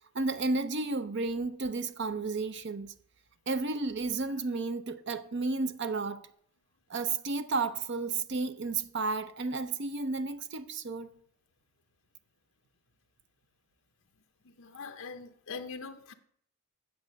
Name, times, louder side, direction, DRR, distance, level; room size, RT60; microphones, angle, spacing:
voice 1, 0.1-2.9 3.5-6.2 6.9-11.1, right 3 dB, 55° right, 0.6 m, -32 dB
voice 2, 14.4-16.1, left 4 dB, 65° left, 0.7 m, -42 dB
8.6 x 7.2 x 6.3 m
head